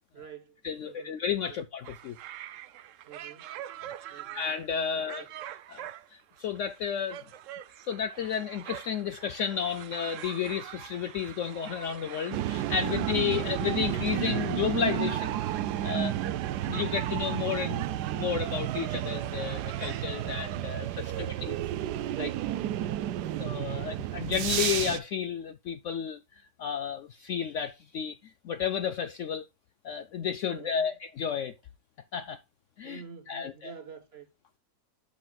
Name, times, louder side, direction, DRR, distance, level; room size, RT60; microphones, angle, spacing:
voice 1, 0.1-1.2 1.5-1.6 3.1-3.6 4.1-4.5 4.9-5.3 16.1-16.5 21.0-21.5 22.1-23.9 30.5-31.0 32.8-34.3, right 8 dB, 45° right, 1.1 m, -47 dB
voice 2, 0.6-2.2 4.1-5.3 5.7-7.2 7.9-15.4 15.8-16.1 16.7-21.1 22.2-22.3 23.4-29.5 29.8-31.6 32.1-32.4 32.8-33.7, left 8 dB, 70° left, 0.7 m, -32 dB
sound 1, 1.8-20.6, right 12 dB, 70° right, 0.8 m, -45 dB
sound 2, 12.3-25.0, right 12 dB, 90° right, 1.2 m, -31 dB
11.0 x 6.4 x 2.3 m
omnidirectional pair, 1.7 m